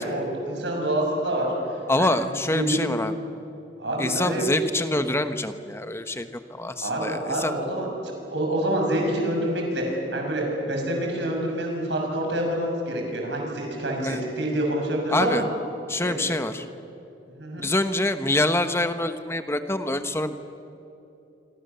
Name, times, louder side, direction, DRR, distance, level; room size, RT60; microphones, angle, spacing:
voice 1, 0.0-1.5 2.0-2.2 2.5-2.9 3.8-4.5 6.8-15.4 16.0-16.3 17.4-17.7, right 1 dB, 75° right, 1 dB, 6.5 m, -27 dB
voice 2, 1.9-3.1 4.0-7.5 14.0-14.2 15.1-15.4 15.9-16.6 17.6-20.3, left 1 dB, 15° left, 9 dB, 1.1 m, -25 dB
26.5 x 24.5 x 6.9 m, 2.8 s
head